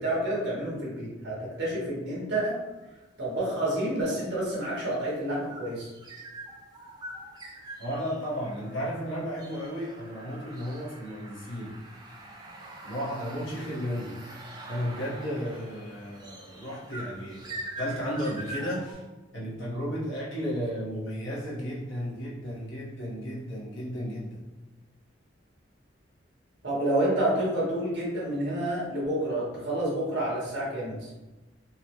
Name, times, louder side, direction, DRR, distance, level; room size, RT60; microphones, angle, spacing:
voice 1, 0.0-2.5 3.2-5.9 26.6-31.1, right 1 dB, 70° right, -6 dB, 1.4 m, -29 dB
sound 1, 2.7-3.0 4.1-18.9, right 2 dB, 20° right, 0.4 m, -44 dB
voice 2, 7.8-11.8 12.8-14.2 14.7-19.0 19.3-24.4, equal, 90° left, -7 dB, 1.2 m, -34 dB
4.0 x 2.1 x 3.0 m, 1.1 s
head